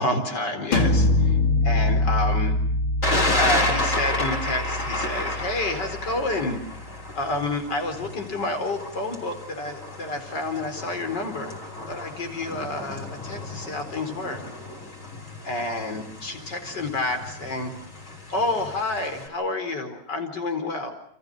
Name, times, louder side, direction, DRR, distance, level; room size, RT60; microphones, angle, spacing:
voice 1, 0.0-2.6 3.4-6.8 7.1-11.5 11.9-14.4 15.4-17.7 18.3-20.9, left 2 dB, 60° left, 7 dB, 5.2 m, -29 dB
sound 1, 0.7-6.4, left 2 dB, 85° left, 3.3 m, -24 dB
Thunder, 3.0-19.3, left 1 dB, 40° left, 5.8 m, -32 dB
30.0 x 29.0 x 6.5 m, 0.64 s
omnidirectional pair, 2.2 m